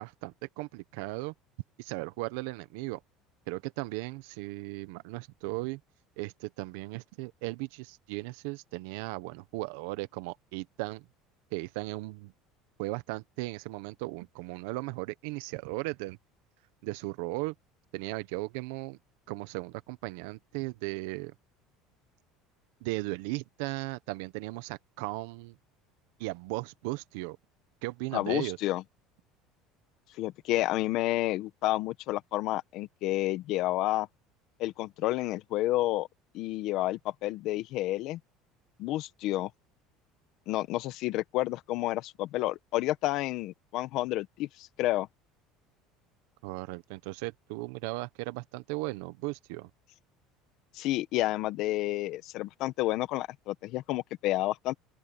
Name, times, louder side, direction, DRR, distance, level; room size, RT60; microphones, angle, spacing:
voice 1, 0.0-1.3 1.8-3.0 3.5-5.8 6.2-11.1 11.5-12.3 12.8-16.2 16.8-17.5 17.9-19.0 19.3-21.3 22.8-25.6 26.2-27.4 27.8-28.6 46.4-49.7, right 22 dB, 80° right, 1.2 m, -36 dB
voice 2, 28.1-28.8 30.2-34.1 34.6-36.1 36.3-38.2 38.8-39.5 40.5-45.1 50.7-54.7, left 16 dB, 60° left, 1.5 m, -30 dB
open air
supercardioid pair, 125°, 0 cm